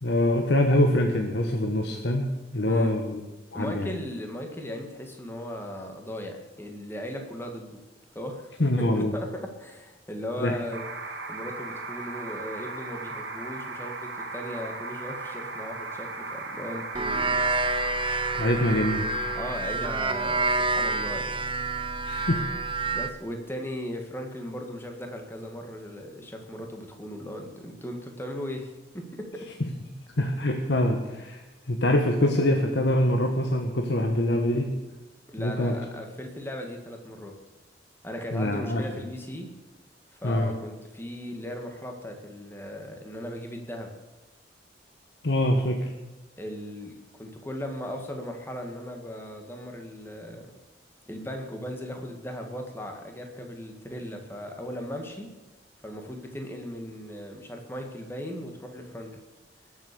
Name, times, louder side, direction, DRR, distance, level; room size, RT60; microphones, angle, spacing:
voice 1, 0.0-3.2 3.5-3.9 8.6-9.1 10.4-10.6 18.4-19.1 22.1-22.5 30.2-31.4 31.7-34.8 35.4-35.7 38.3-38.8 40.2-40.5 45.2-45.9, left 1 dB, 70° left, 3 dB, 1.3 m, -24 dB
voice 2, 2.7-3.0 3.5-7.8 8.2-8.5 8.8-10.9 11.3-17.4 18.3-18.4 19.3-21.5 22.9-28.7 28.9-29.5 35.3-37.4 38.0-39.5 40.1-43.9 46.4-50.5 51.1-55.3 55.8-59.2, equal, 15° left, 3 dB, 1.9 m, -37 dB
sound 1, 10.7-19.6, right 3 dB, 75° right, 2.3 m, -37 dB
Cobra Eye, 16.9-23.1, right 3 dB, 30° right, 0.8 m, -28 dB
21.0 x 7.4 x 6.9 m, 1.1 s
head